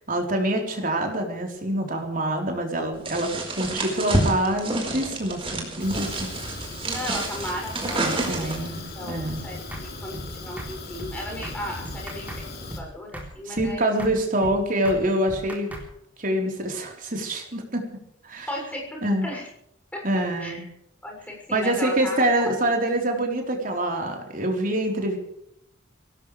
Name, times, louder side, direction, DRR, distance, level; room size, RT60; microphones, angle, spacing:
voice 1, 0.1-6.3 8.2-9.5 13.5-15.7 16.2-17.8 18.2-18.5 19.0-19.3 20.0-20.6 21.5-25.2, right 1 dB, 45° right, 2 dB, 4.0 m, -25 dB
sound 1, 3.1-8.8, right 2 dB, 30° right, 4.5 m, -28 dB
Fire, 5.8-12.8, left 2 dB, 50° left, 3.7 m, -38 dB
voice 2, 6.8-9.2 9.4-13.9 14.4-14.7 18.5-19.5 19.9-20.7 21.0-22.8, left 1 dB, 5° left, -1 dB, 7.0 m, -36 dB
sound 2, 9.3-9.4 9.7-9.9 10.1-10.3 10.6-10.7 11.0-11.1 11.4-11.6 11.8-12.4 12.7-12.9 13.1-13.3 13.6-13.7 14.0-14.1 14.4-14.6 14.8-15.0 15.3-15.9, right 1 dB, 10° right, 3.7 m, -36 dB
23.5 x 17.5 x 3.4 m, 0.76 s
head